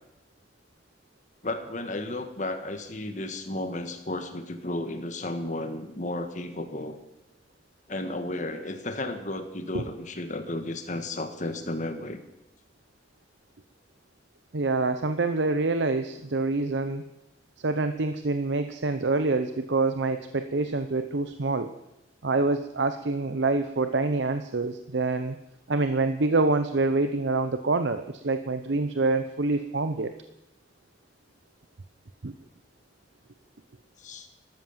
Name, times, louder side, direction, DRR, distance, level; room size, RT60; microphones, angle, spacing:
voice 1, 1.4-7.0 7.9-12.2 34.0-34.3, left 1 dB, 45° left, 7 dB, 1.7 m, -33 dB
voice 2, 14.5-17.1 17.6-21.7 22.2-25.4 25.7-30.1 32.2-32.3, right 3 dB, 80° right, 9 dB, 0.8 m, -26 dB
13.5 x 13.0 x 7.4 m, 0.89 s
head